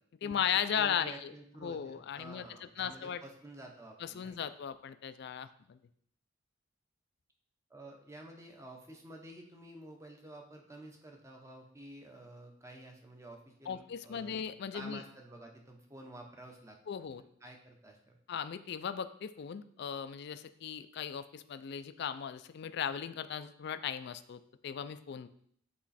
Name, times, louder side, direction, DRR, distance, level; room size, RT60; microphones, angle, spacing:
voice 1, 0.2-1.3 1.6-3.2 4.0-5.8 13.7-15.0 16.9-17.2 18.3-25.3, left 8 dB, 55° left, 12 dB, 0.3 m, -37 dB
voice 2, 0.7-4.4 7.7-14.4 14.7-16.8 17.2-18.2, right 1 dB, 15° right, 2 dB, 0.8 m, -51 dB
8.2 x 3.1 x 4.2 m, 0.65 s
head